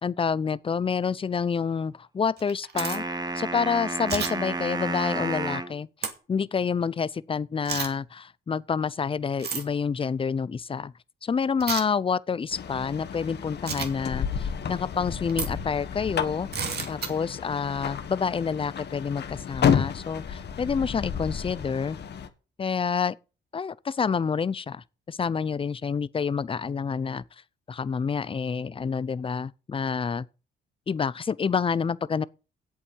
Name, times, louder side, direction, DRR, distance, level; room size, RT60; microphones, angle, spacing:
voice 1, 0.0-3.0 3.3-5.9 6.3-10.9 11.2-16.5 16.9-22.0 22.6-23.2 23.5-27.2 27.7-30.3 30.9-32.3, left 6 dB, 25° left, 0.5 m, -28 dB
sound 1, 2.4-3.0 4.1-4.3 6.0-6.1 7.6-7.9 9.4-9.6 11.6-11.8 13.7-13.9 15.3-15.5 16.5-17.1, right 6 dB, 55° right, 2.5 m, -30 dB
sound 2, 2.8-5.8, right 3 dB, 20° right, 1.3 m, -31 dB
sound 3, 12.5-22.3, left 7 dB, 60° left, 1.5 m, -31 dB
8.4 x 8.2 x 7.4 m
cardioid pair, 90°, 20 cm